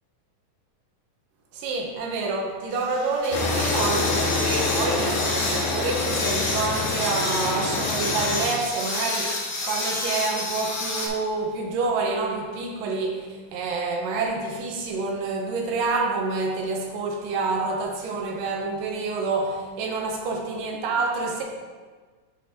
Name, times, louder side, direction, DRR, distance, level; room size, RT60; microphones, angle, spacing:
voice 1, 1.5-21.4, right 3 dB, 80° right, 1 dB, 2.5 m, -28 dB
sound 1, 2.7-11.1, left 2 dB, 65° left, 2.0 m, -29 dB
sound 2, 3.3-8.4, left 2 dB, 80° left, 2.8 m, -27 dB
10.5 x 5.3 x 2.9 m, 1.4 s
omnidirectional pair, 3.9 m